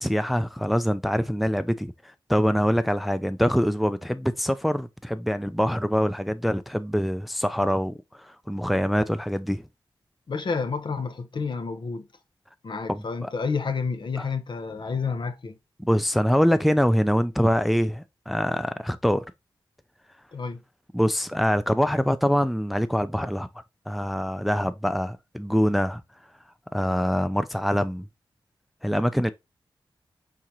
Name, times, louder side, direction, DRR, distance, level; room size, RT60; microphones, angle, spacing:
voice 1, 0.0-1.9 2.3-9.6 12.9-13.3 14.2-14.3 15.8-19.2 20.9-23.5 23.9-26.0 26.7-28.1 28.8-29.3, equal, ahead, 0.4 m, -24 dB
voice 2, 10.3-12.1 12.6-15.6 20.3-20.6, left 5 dB, 60° left, 0.8 m, -30 dB
4.5 x 3.8 x 2.8 m
cardioid pair, 50°, 9 cm